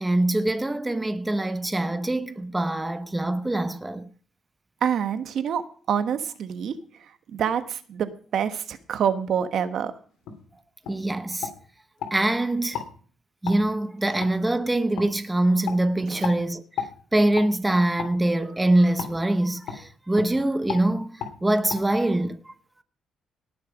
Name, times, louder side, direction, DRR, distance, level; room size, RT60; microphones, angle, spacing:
voice 1, 0.0-4.0 10.9-11.5 12.1-12.8 13.4-16.6 17.1-21.1 21.4-22.5, right 1 dB, 10° right, 0.9 m, -24 dB
voice 2, 4.8-5.6 5.9-6.7 7.3-9.9 16.1-16.3, right 8 dB, 65° right, 1.3 m, -26 dB
sound 1, 10.2-10.4 10.8-11.0 11.4-12.1 12.7-12.9 13.4-13.6 14.2-14.3 15.0-15.1 15.6-15.8 16.2-16.4 16.8-16.9 17.3-17.5 18.0-18.1 19.0-19.1 19.7-19.8 20.1-20.3 20.7-20.8 21.2-21.3 21.7-21.8, left 8 dB, 85° left, 2.8 m, -33 dB
18.5 x 6.7 x 5.1 m
cardioid pair, 90°, 0 cm